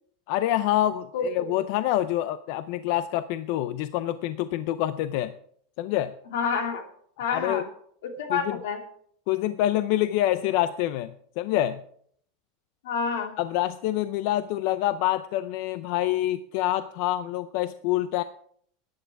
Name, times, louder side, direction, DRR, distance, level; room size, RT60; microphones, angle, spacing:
voice 1, 0.3-5.3 5.8-6.1 7.3-7.6 8.3-8.6 9.3-11.8 13.4-18.2, left 13 dB, 45° left, 13 dB, 0.5 m, -26 dB
voice 2, 1.1-1.5 6.3-6.9 7.2-7.6 8.0-8.8 12.8-13.3, left 5 dB, 75° left, 5 dB, 2.7 m, -28 dB
14.0 x 10.5 x 4.8 m, 0.63 s
supercardioid pair, 180°, 0 cm